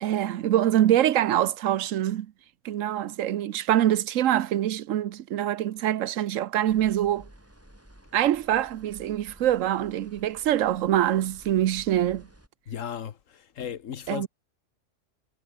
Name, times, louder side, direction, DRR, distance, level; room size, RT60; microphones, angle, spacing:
voice 1, 0.0-2.3 2.6-7.3 8.1-12.3 14.1-14.3, right 12 dB, 90° right, 1.1 m, -24 dB
sound 1, 6.7-12.5, right 1 dB, 10° right, 3.6 m, -53 dB
voice 2, 12.7-14.3, left 8 dB, 80° left, 1.4 m, -35 dB
omnidirectional pair, 1.3 m